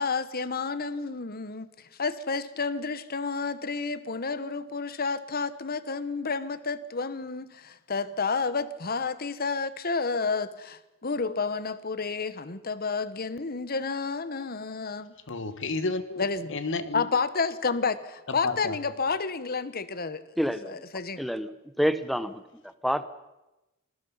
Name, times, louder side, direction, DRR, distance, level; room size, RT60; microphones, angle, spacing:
voice 1, 0.0-1.7 2.0-15.1 16.2-16.6 16.9-20.2 20.6-21.2, left 4 dB, 45° left, 14 dB, 1.2 m, -30 dB
voice 2, 15.3-17.0 18.4-18.8, left 3 dB, 65° left, 11 dB, 1.8 m, -31 dB
voice 3, 20.4-20.8 21.2-21.5 21.8-22.4 22.8-23.0, equal, ahead, 12 dB, 1.0 m, -27 dB
28.0 x 21.0 x 5.6 m, 0.98 s
head